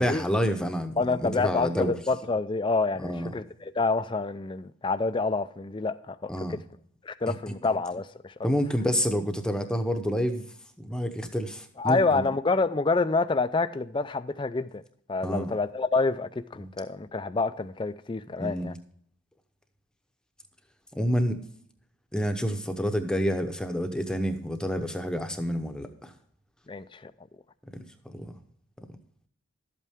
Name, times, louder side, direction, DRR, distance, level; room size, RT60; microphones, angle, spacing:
voice 1, 0.0-1.9 3.0-3.3 6.3-6.6 7.3-7.4 8.4-10.5 10.8-12.2 15.2-15.5 16.5-16.7 18.4-18.8 20.9-21.4 22.1-26.1 27.7-28.3, equal, 5° left, 0.8 m, -28 dB
voice 2, 1.0-6.6 7.0-8.3 11.8-14.8 15.1-18.7 26.7-27.1, left 3 dB, 20° left, 0.4 m, -27 dB
12.5 x 8.3 x 3.5 m
head